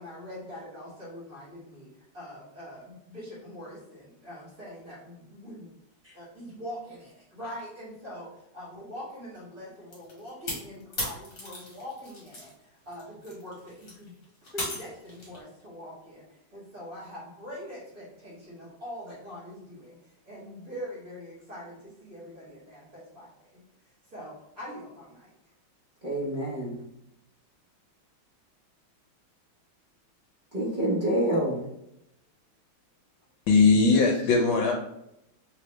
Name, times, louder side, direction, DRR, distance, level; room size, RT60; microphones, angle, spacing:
voice 1, 0.0-5.7 6.1-14.1 14.4-23.6 24.0-25.3, equal, 45° right, -8 dB, 1.9 m, -43 dB
sound 1, 9.9-12.5 12.9-15.4, left 1 dB, 40° left, 1.5 m, -37 dB
voice 2, 26.0-26.8 30.5-31.7, right 1 dB, 75° right, -6 dB, 0.4 m, -27 dB
voice 3, 33.5-34.7, left 4 dB, 75° left, 0 dB, 1.3 m, -20 dB
3.4 x 3.0 x 3.1 m, 0.79 s
omnidirectional pair, 2.2 m